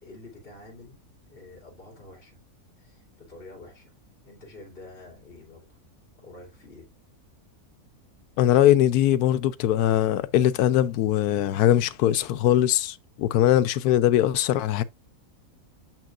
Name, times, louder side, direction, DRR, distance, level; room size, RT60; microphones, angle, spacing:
voice 1, 0.0-1.0 1.3-2.4 2.8-3.9 4.2-5.8 6.2-6.9, left 2 dB, 35° left, 2.8 m, -47 dB
voice 2, 8.4-14.8, left 12 dB, 90° left, 1.1 m, -21 dB
7.2 x 6.0 x 2.4 m
omnidirectional pair, 1.6 m